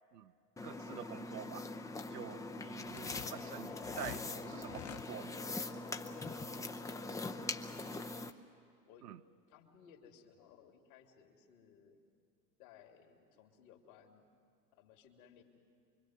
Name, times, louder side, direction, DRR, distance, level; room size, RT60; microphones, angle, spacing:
sound 1, 0.6-8.3, left 2 dB, 5° left, 0.6 m, -42 dB
voice 1, 0.6-1.7 2.1-5.3 9.0-9.2, right 11 dB, 75° right, 0.9 m, -48 dB
voice 2, 2.8-3.8 8.8-9.1 9.5-12.0 12.6-14.3 14.7-15.4, left 8 dB, 55° left, 3.1 m, -61 dB
sound 2, 2.9-4.2 4.6-5.1, left 10 dB, 30° left, 1.2 m, -47 dB
25.5 x 23.5 x 8.0 m
figure-of-eight pair, 90°, 49 cm